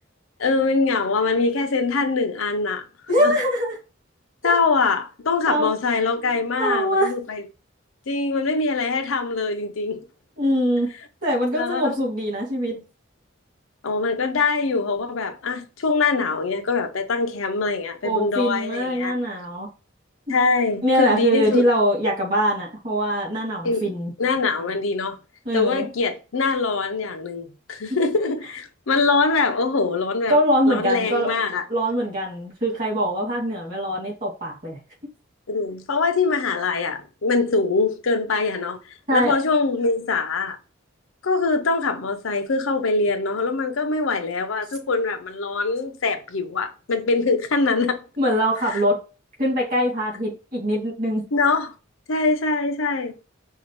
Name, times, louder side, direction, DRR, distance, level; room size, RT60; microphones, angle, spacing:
voice 1, 0.4-2.8 3.2-3.3 4.4-7.4 8.1-10.0 11.5-12.0 13.8-19.2 20.3-21.6 23.6-25.2 25.5-30.4 30.7-31.6 35.5-38.8 39.1-40.6 41.2-48.0 48.7-48.8 51.3-51.7 52.1-53.1, left 4 dB, 90° left, 0.7 m, -23 dB
voice 2, 3.1-3.8 4.4-4.5 5.5-5.7 6.6-7.1 10.4-10.9 11.2-12.8 18.0-19.7 20.3-20.4 20.8-24.1 25.4-25.9 27.9-28.0 30.3-31.3 31.7-34.8 39.1-39.3 48.2-49.0 49.4-51.2, equal, 40° right, 2.5 m, -22 dB
5.5 x 2.4 x 3.1 m
head